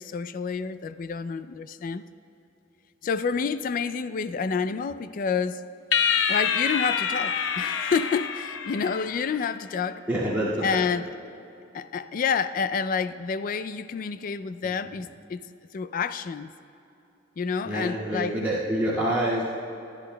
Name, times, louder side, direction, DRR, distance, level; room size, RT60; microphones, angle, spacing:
voice 1, 0.0-2.0 3.0-5.6 6.3-10.0 10.6-11.1 11.7-15.4 15.7-16.5 17.4-18.3, left 5 dB, 45° left, 13 dB, 0.3 m, -29 dB
sound 1, 5.9-9.5, left 7 dB, 90° left, 0.6 m, -27 dB
voice 2, 10.1-10.8 17.6-19.5, right 1 dB, 10° right, -12 dB, 2.0 m, -26 dB
23.5 x 10.5 x 2.2 m, 2.8 s
head